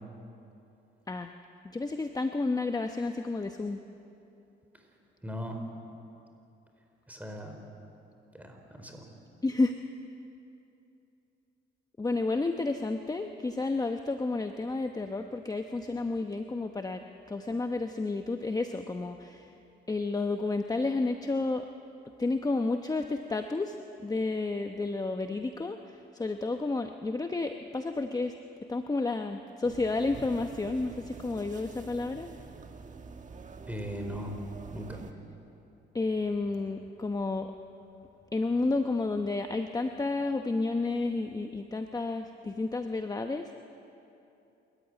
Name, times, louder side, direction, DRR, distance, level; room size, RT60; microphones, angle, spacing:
voice 1, 1.7-3.8 9.4-9.7 12.0-19.5 19.9-21.7 22.2-23.7 24.0-28.3 28.7-32.3 35.9-37.5 38.3-43.5, left 3 dB, 20° left, 6 dB, 0.9 m, -31 dB
voice 2, 5.2-5.6 7.1-7.6 8.3-9.0 33.7-34.3 34.7-35.0, equal, 10° right, 3 dB, 4.5 m, -39 dB
sound 1, 29.6-35.1, right 4 dB, 40° right, 1.6 m, -46 dB
27.5 x 14.5 x 9.7 m, 2.8 s
cardioid pair, 90°, 20 cm